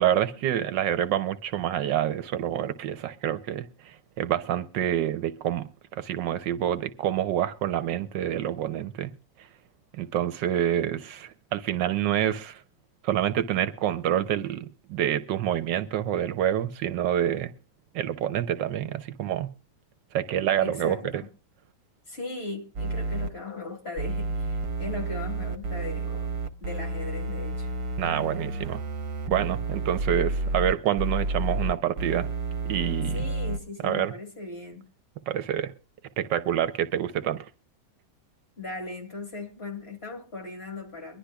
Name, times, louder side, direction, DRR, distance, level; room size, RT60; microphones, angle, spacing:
voice 1, 0.0-9.1 9.9-12.6 13.0-17.5 17.9-19.5 20.1-21.0 28.0-28.8 29.3-32.3 32.7-33.1 33.8-34.1 35.3-35.7 36.2-37.5, right 11 dB, 75° right, 1.4 m, -27 dB
voice 2, 20.6-21.3 22.1-26.3 26.6-27.7 33.1-34.9 38.6-41.2, left 3 dB, 35° left, 2.7 m, -38 dB
sound 1, 22.8-23.3 24.0-33.6, right 3 dB, 55° right, 1.4 m, -30 dB
22.5 x 11.5 x 2.3 m
omnidirectional pair, 2.0 m